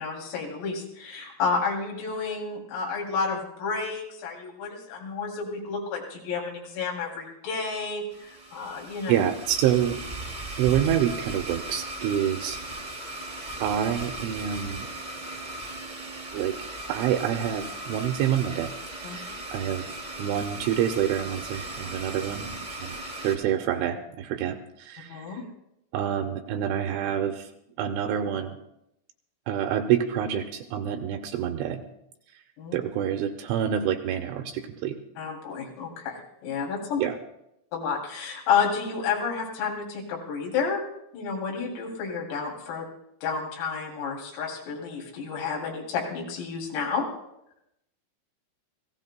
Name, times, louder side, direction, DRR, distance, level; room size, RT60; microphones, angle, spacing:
voice 1, 0.0-9.1 19.0-19.2 25.1-25.4 32.6-32.8 35.2-37.0 37.7-40.8 41.1-42.9 43.2-47.1, left 5 dB, 80° left, -1 dB, 5.6 m, -30 dB
Domestic sounds home sounds, 8.1-23.4, right 1 dB, 40° right, 0.5 m, -37 dB
voice 2, 9.1-10.0 10.6-12.6 13.6-14.9 16.3-18.7 19.0-22.5 22.8-23.0 23.2-25.4 25.9-27.5 27.8-28.6 29.5-31.8 32.7-35.0 37.0-37.2, right 10 dB, 80° right, 5 dB, 2.9 m, -27 dB
29.0 x 17.0 x 2.2 m, 0.82 s
omnidirectional pair, 6.0 m